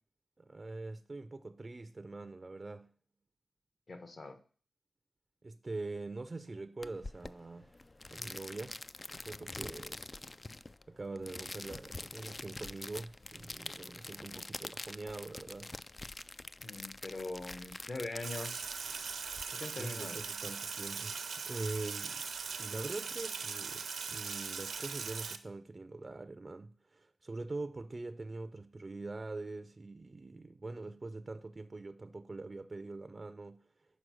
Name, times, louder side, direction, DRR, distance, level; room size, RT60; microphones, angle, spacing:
voice 1, 0.4-2.9 5.4-7.8 8.1-8.8 9.1-10.0 10.9-15.7 19.8-21.2 21.5-22.2 22.6-33.6, right 3 dB, 35° right, 0.5 m, -43 dB
voice 2, 3.9-4.4 16.6-18.6 19.5-20.2, left 2 dB, 50° left, 1.2 m, -42 dB
sound 1, 6.8-19.4, left 2 dB, 30° left, 0.3 m, -46 dB
Sink (filling or washing), 18.2-25.4, right 5 dB, 85° right, 0.7 m, -40 dB
6.3 x 4.7 x 6.2 m
cardioid pair, 60°, 0 cm